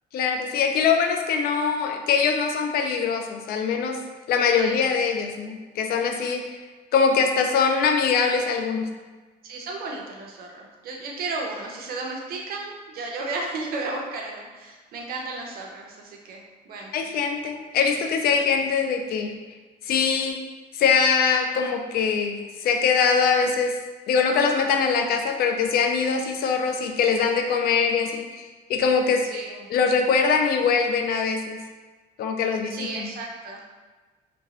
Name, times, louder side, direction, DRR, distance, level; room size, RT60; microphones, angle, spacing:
voice 1, 0.1-4.0 4.3-6.6 6.9-8.9 16.9-19.3 19.9-20.4 20.7-23.7 24.1-29.3 29.7-31.6 32.2-33.1, left 5 dB, 65° left, 4 dB, 0.4 m, -23 dB
voice 2, 9.4-16.9 18.5-18.6 29.3-29.7 32.7-33.6, right 3 dB, 65° right, 0 dB, 0.6 m, -34 dB
2.8 x 2.6 x 3.0 m, 1.3 s
cardioid pair, 110°, 17 cm